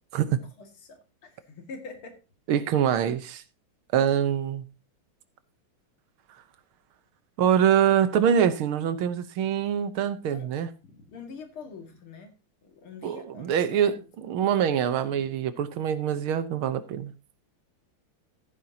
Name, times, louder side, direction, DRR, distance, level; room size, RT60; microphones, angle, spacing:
voice 1, 0.3-2.2 10.3-10.5 10.8-12.3 12.6-14.0 15.1-15.3, left 4 dB, 85° left, 3.0 m, -45 dB
voice 2, 2.5-3.4 3.9-4.7 7.4-10.7 13.0-17.1, right 9 dB, 90° right, 1.8 m, -24 dB
15.0 x 9.0 x 2.8 m
omnidirectional pair, 2.3 m